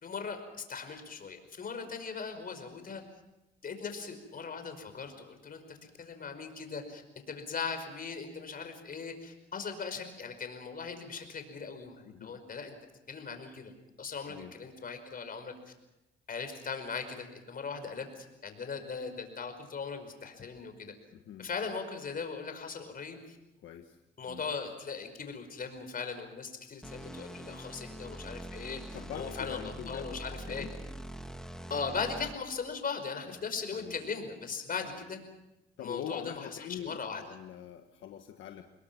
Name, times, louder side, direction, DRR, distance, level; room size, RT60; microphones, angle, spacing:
voice 1, 0.0-3.0 3.6-7.0 7.3-12.7 13.1-13.7 14.0-15.5 16.3-20.9 21.4-23.4 24.2-30.7 31.7-35.2 35.8-37.4, left 5 dB, 45° left, 7 dB, 5.3 m, -39 dB
voice 2, 12.0-12.4 14.3-14.5 21.1-21.5 23.6-24.0 24.3-24.4 28.9-30.7 33.7-34.1 34.9-35.0 35.8-38.6, left 10 dB, 80° left, 5 dB, 1.5 m, -43 dB
sound 1, 26.8-32.6, right 1 dB, 5° left, 1.8 m, -44 dB
27.5 x 21.0 x 6.1 m, 0.96 s
cardioid pair, 90°, 20 cm